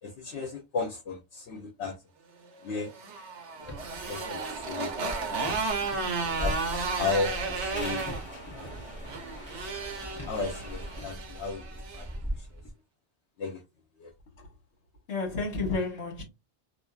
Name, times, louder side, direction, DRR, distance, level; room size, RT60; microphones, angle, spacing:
voice 1, 0.0-2.0 2.6-2.9 3.6-3.8 4.1-5.6 6.2-8.0 8.5-8.9 10.2-12.1 12.4-12.5 13.4-13.6 14.0-14.1, left 4 dB, 75° left, 1.0 m, -35 dB
Motorcycle, 2.7-12.1, right 4 dB, 80° right, 1.0 m, -34 dB
sound 1, 3.6-12.7, equal, 15° left, 0.7 m, -41 dB
sound 2, 5.7-11.1, equal, 5° right, 1.4 m, -43 dB
voice 2, 15.1-16.2, left 3 dB, 60° left, 1.4 m, -31 dB
2.6 x 2.5 x 2.3 m
omnidirectional pair, 1.2 m